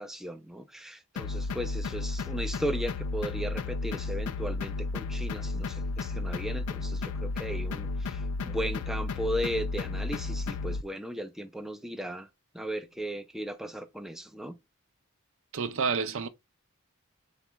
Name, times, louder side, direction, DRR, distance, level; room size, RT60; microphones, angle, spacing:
voice 1, 0.0-12.3 12.5-14.6, equal, ahead, 0.4 m, -36 dB
sound 1, 1.2-10.8, left 3 dB, 80° left, 0.4 m, -33 dB
voice 2, 15.5-16.3, right 5 dB, 60° right, 0.5 m, -29 dB
4.0 x 2.1 x 4.5 m
head